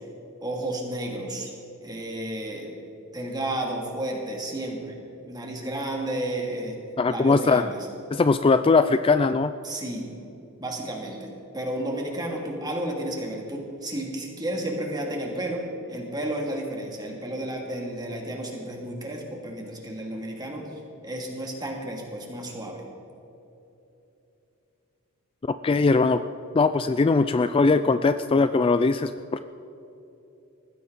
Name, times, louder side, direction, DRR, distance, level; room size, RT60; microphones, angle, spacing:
voice 1, 0.4-1.5 1.8-2.8 3.1-5.0 5.2-6.8 7.1-7.8 9.6-10.1 10.6-22.8, right 1 dB, 20° right, 0 dB, 2.7 m, -32 dB
voice 2, 7.0-7.6 8.1-9.5 25.5-26.2 26.5-29.4, left 4 dB, 25° left, 11 dB, 0.3 m, -20 dB
20.0 x 15.5 x 4.1 m, 3.0 s
head